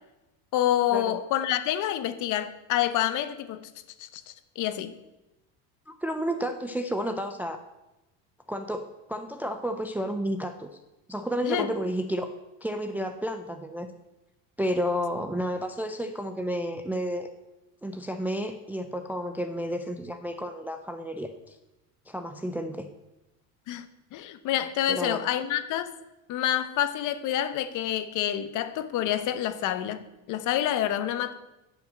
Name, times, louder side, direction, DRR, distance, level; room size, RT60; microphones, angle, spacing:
voice 1, 0.5-3.7 4.0-4.9 11.4-11.7 23.7-23.9 24.1-25.9 26.3-31.3, left 11 dB, 50° left, 0.9 m, -28 dB
voice 2, 5.9-7.6 8.5-10.7 11.1-12.3 12.6-13.9 14.6-17.3 17.8-21.6 22.1-22.9 24.9-25.2, equal, 5° right, 0.4 m, -31 dB
10.0 x 5.8 x 7.8 m
cardioid pair, 140°, 38 cm